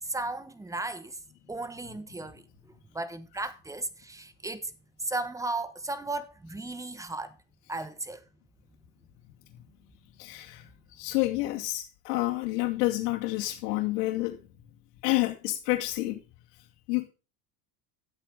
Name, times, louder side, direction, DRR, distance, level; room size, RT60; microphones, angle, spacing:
voice 1, 0.0-1.2 1.5-2.4 2.9-4.7 5.0-7.4 7.7-8.2, right 2 dB, 5° right, 1.4 m, -35 dB
voice 2, 10.2-10.6 10.9-14.4 15.0-16.2 16.9-17.1, left 18 dB, 85° left, 2.6 m, -29 dB
12.5 x 8.1 x 5.4 m
supercardioid pair, 125°, 46 cm